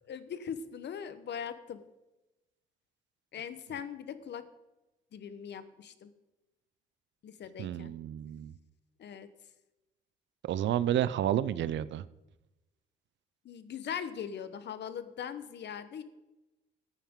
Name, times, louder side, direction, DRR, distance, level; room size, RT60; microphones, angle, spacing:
voice 1, 0.0-1.8 3.3-4.4 5.1-6.1 7.2-7.9 9.0-9.3 13.4-16.0, left 8 dB, 60° left, 12 dB, 1.0 m, -40 dB
voice 2, 7.6-8.5 10.4-12.0, right 11 dB, 65° right, 17 dB, 0.6 m, -30 dB
14.5 x 9.1 x 3.7 m, 1.0 s
cardioid pair, 90°, 20 cm